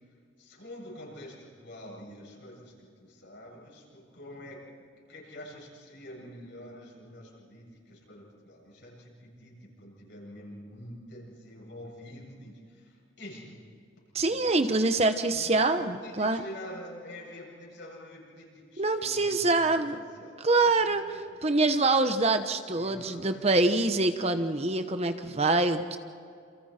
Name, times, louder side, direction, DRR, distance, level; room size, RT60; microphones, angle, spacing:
voice 1, 0.4-4.6 5.1-13.6 14.3-14.5 15.3-19.9 20.1-21.6 22.8-23.5, left 1 dB, 65° left, -3 dB, 7.5 m, -47 dB
voice 2, 14.1-16.4 18.8-20.0 20.4-26.0, right 2 dB, 30° right, 8 dB, 1.0 m, -25 dB
28.5 x 28.0 x 4.4 m, 2.3 s
head